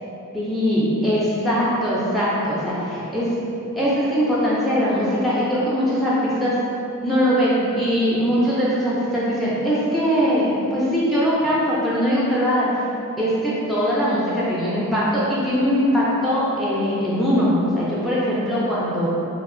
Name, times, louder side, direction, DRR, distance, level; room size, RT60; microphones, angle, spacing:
voice 1, 0.3-3.3 3.7-6.6 7.0-12.7 13.2-19.1, equal, ahead, -8 dB, 0.4 m, -21 dB
2.8 x 2.3 x 2.5 m, 2.9 s
head